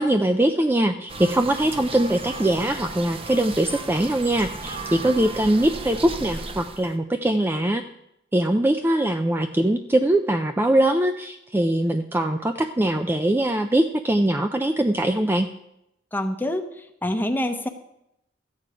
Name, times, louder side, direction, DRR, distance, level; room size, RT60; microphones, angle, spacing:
voice 1, 0.0-7.8 8.3-15.5, right 1 dB, 10° right, 7 dB, 0.4 m, -22 dB
sound 1, 1.1-7.0, right 3 dB, 30° right, 0.8 m, -35 dB
voice 2, 16.1-17.7, left 1 dB, 10° left, 6 dB, 0.9 m, -26 dB
13.5 x 8.6 x 5.0 m, 0.81 s
head